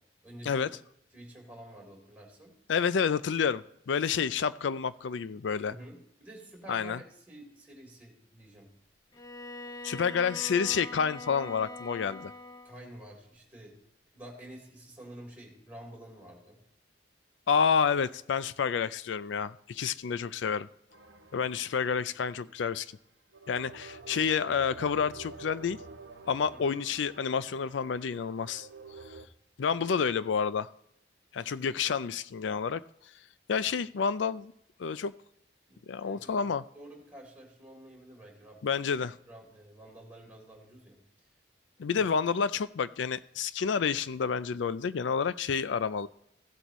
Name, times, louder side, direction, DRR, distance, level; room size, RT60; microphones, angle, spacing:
voice 1, 0.2-0.7 1.1-2.5 5.7-8.7 12.6-13.7 14.1-16.6 26.5-26.8 35.7-36.4 36.7-38.6 39.3-41.3 41.9-42.1, right 1 dB, 10° right, -1 dB, 3.5 m, -49 dB
voice 2, 2.7-5.8 6.7-7.0 9.8-12.3 17.5-20.7 21.3-22.9 23.5-25.8 26.3-28.7 29.6-30.7 31.3-32.8 33.5-34.5 34.8-35.1 35.9-36.6 38.6-39.2 41.8-46.1, left 6 dB, 85° left, 16 dB, 0.4 m, -29 dB
Bowed string instrument, 9.1-12.9, left 2 dB, 20° left, 0.8 m, -43 dB
sound 1, 20.9-22.6 23.3-29.3, right 4 dB, 85° right, 0.9 m, -49 dB
16.5 x 7.9 x 3.1 m, 0.75 s
head